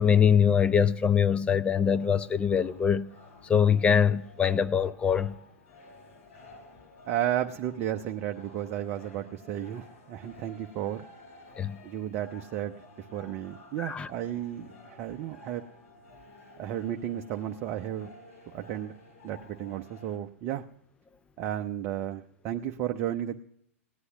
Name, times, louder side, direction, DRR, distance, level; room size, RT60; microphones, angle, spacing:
voice 1, 0.0-3.1 3.4-5.4 11.6-11.8 13.8-14.1, left 7 dB, 15° left, 0.4 m, -23 dB
sound 1, 1.6-20.2, left 2 dB, 55° left, 4.9 m, -53 dB
voice 2, 7.0-11.0 11.8-15.6 16.6-18.1 18.5-18.9 19.2-20.6 21.4-23.4, right 11 dB, 35° right, 0.7 m, -33 dB
17.0 x 9.8 x 5.8 m
figure-of-eight pair, 105°, 8 cm